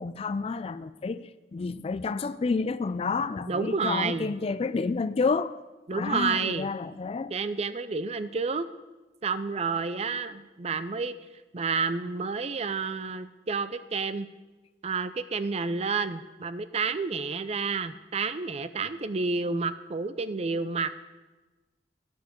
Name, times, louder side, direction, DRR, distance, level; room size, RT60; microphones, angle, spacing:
voice 1, 0.0-5.6 5.9-7.3, left 4 dB, 35° left, 0.3 m, -30 dB
voice 2, 3.5-4.3 5.9-6.7 7.3-8.7 9.2-11.2 11.5-14.3 14.8-20.9, right 4 dB, 35° right, 0.5 m, -30 dB
10.5 x 8.2 x 6.4 m
head